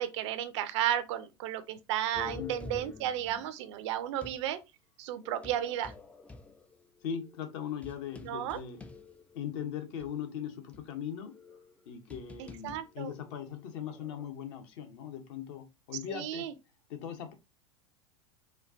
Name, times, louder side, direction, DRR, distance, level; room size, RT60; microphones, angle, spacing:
voice 1, 0.0-4.6 5.0-5.9 8.2-8.6 12.4-13.1 16.1-16.5, right 11 dB, 55° right, 0.5 m, -33 dB
sound 1, 2.1-4.5 5.2-9.6 10.0-10.1 10.7-14.3, left 4 dB, 10° left, 0.3 m, -49 dB
voice 2, 7.0-8.8 9.3-11.3 11.9-16.5 16.9-17.3, left 8 dB, 55° left, 0.9 m, -39 dB
4.4 x 2.3 x 2.6 m
figure-of-eight pair, 85°, 17 cm